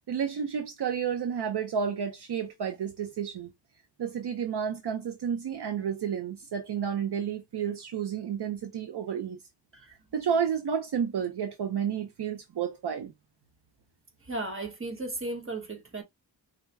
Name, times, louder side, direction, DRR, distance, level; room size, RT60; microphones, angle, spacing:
voice 1, 0.0-3.5 4.0-9.4 9.9-13.1, right 7 dB, 65° right, 0.6 m, -31 dB
voice 2, 14.2-16.0, right 2 dB, 30° right, 1.2 m, -35 dB
4.6 x 2.2 x 3.2 m
wide cardioid pair, 130°, 44 cm